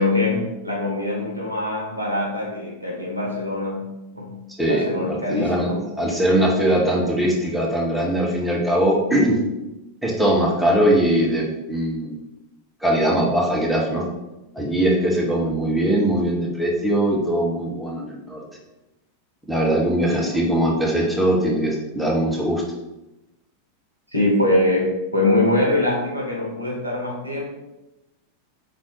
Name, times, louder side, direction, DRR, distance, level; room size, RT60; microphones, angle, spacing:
voice 1, 0.0-3.9 4.1-4.4 4.7-5.9 20.1-20.5 24.1-27.5, left 2 dB, 90° left, -2 dB, 1.8 m, -23 dB
voice 2, 4.6-9.4 10.0-12.2 12.8-14.1 14.5-18.4 19.5-22.6, right 1 dB, ahead, -4 dB, 1.4 m, -21 dB
5.2 x 4.0 x 4.8 m, 0.98 s
figure-of-eight pair, 90°, 0 cm